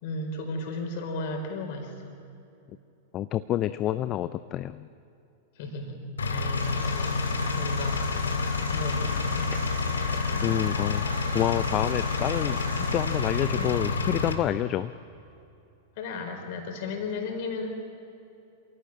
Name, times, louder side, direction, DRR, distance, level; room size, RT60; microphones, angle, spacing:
voice 1, 0.0-1.9 5.6-8.0 8.7-9.5 10.1-10.4 13.5-13.7 16.0-17.7, left 2 dB, 50° left, 3 dB, 4.7 m, -35 dB
voice 2, 3.1-4.9 10.4-11.0 11.3-14.9, left 13 dB, 35° left, 14 dB, 0.5 m, -28 dB
Engine, 6.2-14.3, left 4 dB, 70° left, 2.1 m, -28 dB
Applause / Crowd, 6.5-13.7, equal, 90° right, 7.6 m, -41 dB
27.0 x 17.0 x 9.0 m, 2.8 s
figure-of-eight pair, 95°, 0 cm